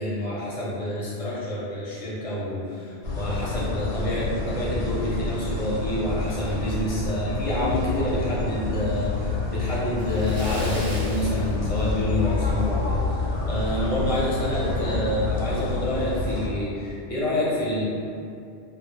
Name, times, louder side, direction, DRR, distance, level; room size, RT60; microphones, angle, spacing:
voice 1, 0.0-17.9, left 1 dB, 40° left, -8 dB, 0.5 m, -28 dB
sound 1, 3.0-16.5, left 2 dB, 90° left, 0.9 m, -28 dB
Splash splatter, 10.0-12.3 12.6-12.8 13.2-13.3 14.8-14.9 15.2-15.3 15.9-16.2, right 1 dB, 45° right, 0.7 m, -39 dB
2.1 x 2.0 x 3.1 m, 2.5 s
omnidirectional pair, 1.2 m